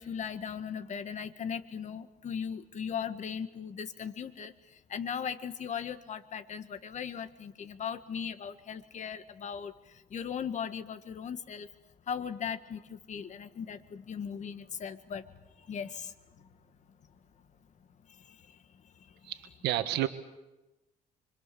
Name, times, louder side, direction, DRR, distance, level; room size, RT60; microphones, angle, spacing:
voice 1, 0.0-11.7 12.1-16.5 18.1-19.2, left 7 dB, 45° left, 9 dB, 1.8 m, -38 dB
voice 2, 19.2-20.1, right 13 dB, 85° right, 9 dB, 1.6 m, -30 dB
26.0 x 25.5 x 7.1 m, 1.0 s
cardioid pair, 110°, 17 cm